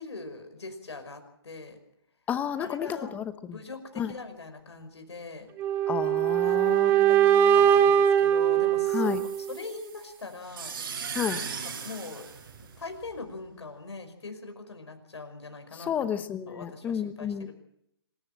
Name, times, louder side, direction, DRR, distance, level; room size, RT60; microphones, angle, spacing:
voice 1, 0.0-1.8 2.6-3.2 3.5-5.5 6.4-10.8 11.8-12.3 12.6-16.1 16.5-17.5, left 3 dB, 85° left, 6 dB, 5.5 m, -42 dB
voice 2, 2.3-2.9 3.1-3.2 4.0-4.1 5.9-7.3 8.9-9.2 11.1-11.4 15.9-17.5, left 8 dB, 10° left, 12 dB, 0.9 m, -31 dB
sound 1, 5.6-9.6, right 9 dB, 15° right, 0.9 m, -22 dB
sound 2, 8.9-13.2, right 6 dB, 55° right, 6.0 m, -38 dB
26.5 x 14.0 x 7.5 m, 0.77 s
hypercardioid pair, 150°, 14 cm